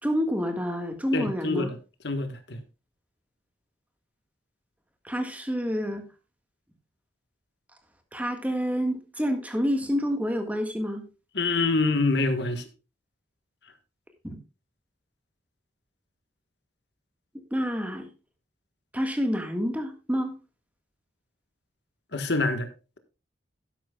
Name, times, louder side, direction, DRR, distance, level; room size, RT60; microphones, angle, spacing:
voice 1, 0.0-1.7 5.0-6.0 8.1-11.0 14.2-14.4 17.5-18.1 18.9-20.3, equal, 10° right, 1.6 m, -28 dB
voice 2, 1.1-1.7 2.0-2.6 11.3-12.6 22.1-22.7, left 3 dB, 60° left, 1.5 m, -26 dB
12.0 x 10.5 x 2.4 m
head